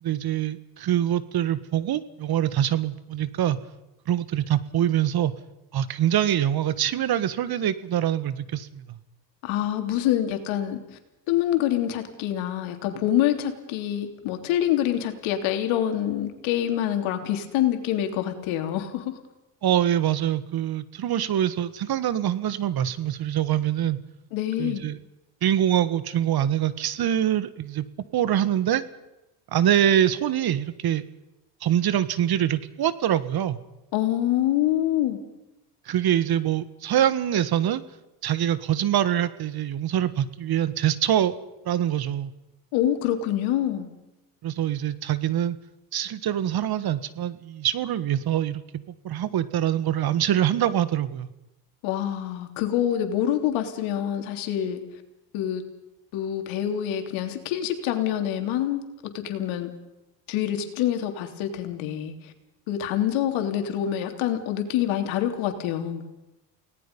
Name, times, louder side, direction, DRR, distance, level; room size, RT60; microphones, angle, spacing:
voice 1, 0.0-3.6 4.1-5.3 5.7-8.8 19.6-24.0 24.6-25.0 25.4-27.8 28.1-28.8 29.5-31.0 31.6-33.6 35.9-37.8 38.2-41.3 41.6-42.3 44.4-45.6 45.9-48.6 49.0-51.3, right 11 dB, 50° right, 14 dB, 1.6 m, -24 dB
voice 2, 9.4-10.8 11.3-19.1 24.3-24.9 33.9-35.2 42.7-43.9 51.8-54.8 55.3-55.6 56.1-58.8 59.2-59.7 60.3-62.3 62.7-66.0, left 11 dB, 70° left, 6 dB, 3.4 m, -26 dB
29.5 x 19.0 x 5.5 m, 0.94 s
supercardioid pair, 80°, 49 cm